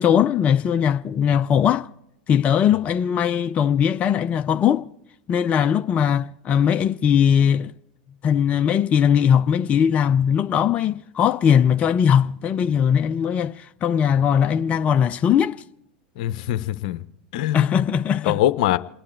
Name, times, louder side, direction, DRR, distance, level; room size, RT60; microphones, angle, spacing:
voice 1, 0.0-1.9 2.3-4.9 5.3-7.7 8.2-15.6 17.5-18.4, left 8 dB, 30° left, 0.5 m, -20 dB
voice 2, 16.2-17.0 17.3-17.7 18.3-18.8, left 13 dB, 65° left, 0.8 m, -23 dB
28.5 x 10.0 x 4.5 m
hypercardioid pair, 100°, 5 cm